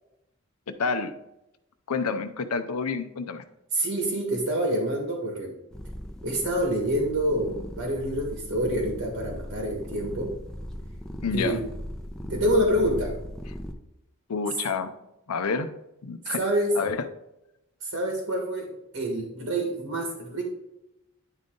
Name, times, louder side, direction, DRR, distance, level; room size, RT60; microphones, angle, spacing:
voice 1, 0.7-1.1 1.9-3.4 11.2-11.6 14.3-14.9 15.3-15.7 16.0-16.4 16.7-17.0, left 4 dB, 90° left, 8 dB, 0.5 m, -28 dB
voice 2, 3.7-5.5 6.2-10.3 11.3-11.6 12.3-13.1 16.4-16.8 17.8-20.4, right 1 dB, 75° right, 0 dB, 1.7 m, -27 dB
sound 1, 5.7-13.7, equal, 5° left, 0.5 m, -38 dB
9.7 x 3.7 x 3.8 m, 0.89 s
head